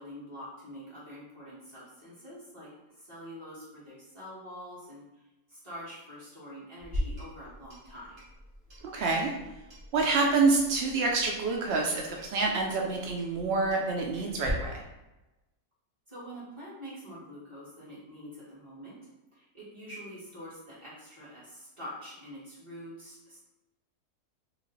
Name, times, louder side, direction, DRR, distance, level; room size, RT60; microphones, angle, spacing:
voice 1, 0.0-2.7 3.0-5.0 5.5-8.2 16.1-19.0 19.3-23.4, equal, 20° right, -10 dB, 1.5 m, -45 dB
Clock, 6.8-14.5, equal, 40° right, 1.1 m, -43 dB
voice 2, 8.9-9.3 9.9-14.7, right 3 dB, 85° right, 0 dB, 0.5 m, -27 dB
3.1 x 2.5 x 3.8 m, 1.0 s
omnidirectional pair, 1.6 m